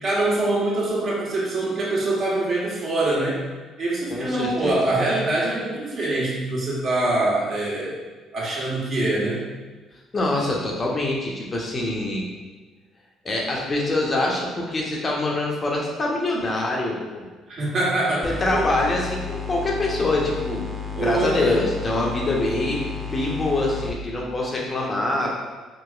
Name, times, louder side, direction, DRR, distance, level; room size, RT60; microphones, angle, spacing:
voice 1, 0.0-3.4 3.8-8.0 8.3-9.5 17.5-18.7 20.9-21.4, right 2 dB, 45° right, -5 dB, 1.3 m, -24 dB
voice 2, 4.1-4.8 10.1-12.2 13.2-17.2 18.2-20.6 21.0-25.4, left 2 dB, 35° left, -2 dB, 0.8 m, -25 dB
sound 1, 18.2-24.0, left 5 dB, ahead, 0.7 m, -32 dB
4.3 x 2.9 x 2.5 m, 1.3 s
hypercardioid pair, 50°, 0 cm